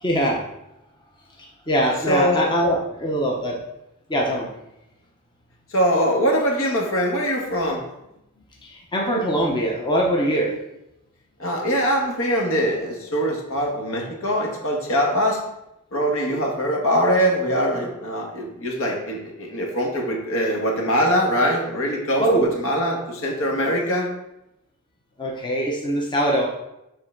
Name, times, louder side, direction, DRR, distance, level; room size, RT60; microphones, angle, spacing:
voice 1, 0.0-0.4 1.7-3.6 4.1-4.5 8.7-10.6 22.2-22.5 25.2-26.5, right 1 dB, 20° left, -2 dB, 0.9 m, -22 dB
voice 2, 2.1-2.4 5.7-7.8 11.4-15.4 15.9-24.1, equal, 65° left, 0 dB, 1.5 m, -22 dB
5.6 x 3.9 x 5.8 m, 0.87 s
head